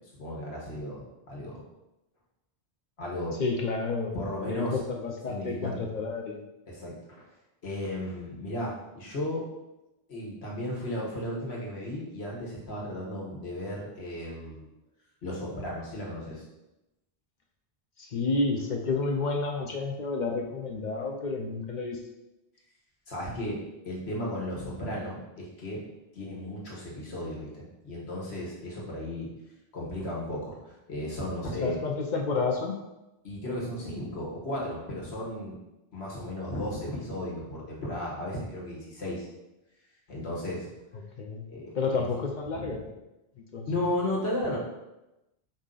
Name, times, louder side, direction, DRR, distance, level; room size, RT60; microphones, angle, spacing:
voice 1, 0.2-1.6 3.0-3.4 4.1-4.8 5.3-5.8 6.7-7.2 7.6-9.4 10.1-14.7 15.2-16.4 23.1-25.8 26.1-29.3 29.7-31.8 33.2-35.5 35.9-39.3 40.1-40.7 41.5-41.7 42.5-42.8 43.6-44.6, left 1 dB, 70° left, -4 dB, 1.4 m, -35 dB
voice 2, 3.4-4.1 4.5-6.4 18.0-22.0 31.6-32.7 41.2-41.4 41.7-42.8 43.5-43.7, left 3 dB, 55° left, 1 dB, 0.6 m, -30 dB
4.9 x 2.7 x 3.8 m, 0.97 s
omnidirectional pair, 1.1 m